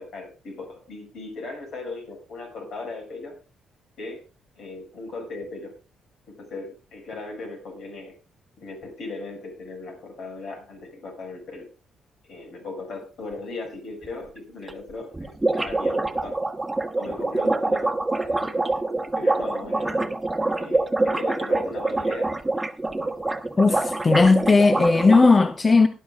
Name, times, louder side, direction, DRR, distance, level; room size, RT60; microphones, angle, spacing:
voice 1, 0.0-3.4 4.0-4.2 4.5-5.8 6.3-8.1 8.6-11.7 12.2-16.4 16.9-18.8 19.1-20.0 20.5-22.3, left 3 dB, 70° left, 6.9 m, -38 dB
sound 1, 14.0-14.1 14.4-14.5 14.7-14.8 15.0-25.3, right 2 dB, 10° right, 1.4 m, -25 dB
voice 2, 23.6-25.9, left 3 dB, 30° left, 0.8 m, -17 dB
19.0 x 11.0 x 2.6 m
cardioid pair, 90°, 0 cm